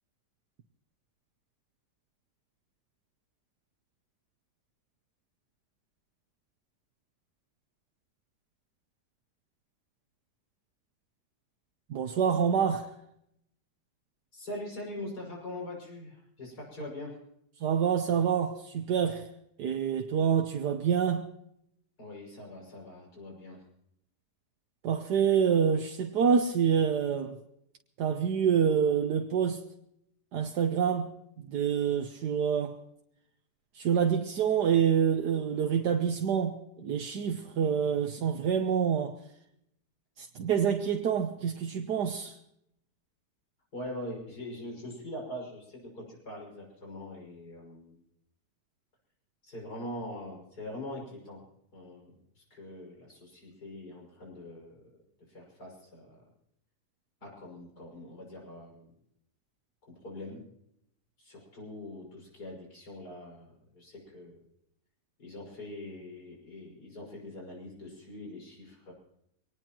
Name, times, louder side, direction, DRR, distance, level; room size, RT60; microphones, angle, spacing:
voice 1, 11.9-12.9 17.6-19.3 19.6-21.3 24.8-27.4 28.0-29.6 30.3-31.1 31.4-32.8 33.7-39.2 40.2-42.4, right 7 dB, 75° right, 1.5 m, -27 dB
voice 2, 14.3-17.2 22.0-23.6 43.7-48.0 49.4-51.4 51.7-52.1 52.4-54.8 55.3-56.3 57.2-58.9 59.9-60.4 61.2-64.4 65.2-68.9, left 1 dB, 65° left, 6.8 m, -43 dB
24.0 x 19.0 x 3.0 m
omnidirectional pair, 1.8 m